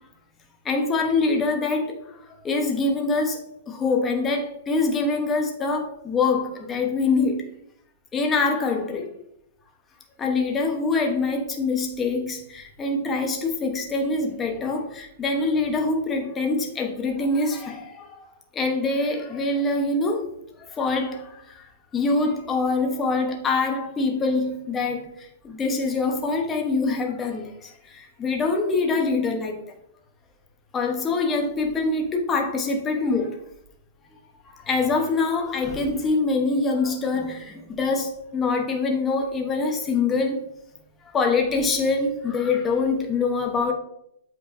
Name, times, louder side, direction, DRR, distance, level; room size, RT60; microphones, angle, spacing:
voice 1, 0.6-2.0 2.3-3.4 3.7-7.5 8.1-9.1 10.2-18.2 18.5-20.2 20.6-21.6 21.9-29.6 30.7-33.4 34.5-40.4 41.0-43.7, left 3 dB, 15° left, 2 dB, 1.0 m, -24 dB
7.9 x 4.6 x 2.7 m, 0.75 s
hypercardioid pair, 150°, 0 cm